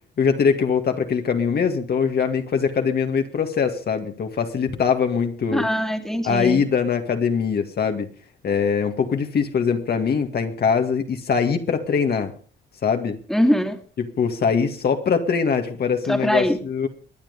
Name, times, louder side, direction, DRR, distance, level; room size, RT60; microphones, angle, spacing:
voice 1, 0.2-5.7 6.2-8.1 8.4-12.3 12.8-13.2 14.0-16.9, left 6 dB, 55° left, 5 dB, 2.1 m, -22 dB
voice 2, 5.5-6.6 13.3-13.8 16.1-16.6, equal, ahead, 5 dB, 2.4 m, -22 dB
22.5 x 9.0 x 5.3 m, 0.41 s
cardioid pair, 90°, 20 cm